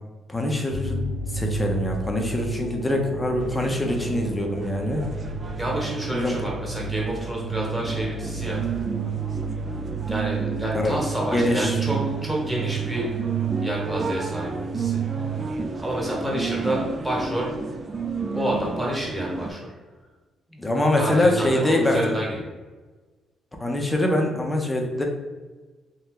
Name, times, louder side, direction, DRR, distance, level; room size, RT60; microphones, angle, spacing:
voice 1, 0.3-5.0 6.1-6.3 10.8-11.0 11.3-11.8 12.6-12.7 20.5-22.1 23.6-25.0, left 1 dB, 15° left, 2 dB, 0.6 m, -24 dB
sound 1, 0.7-15.4, right 6 dB, 70° right, 0.9 m, -32 dB
sound 2, 3.4-19.5, right 4 dB, 35° right, 0.3 m, -32 dB
voice 2, 5.6-8.6 10.1-13.1 13.6-15.0 15.8-17.5 18.3-19.7 21.0-22.5, right 1 dB, 10° right, -4 dB, 1.2 m, -29 dB
2.8 x 2.2 x 3.6 m, 1.3 s
cardioid pair, 90°, 0 cm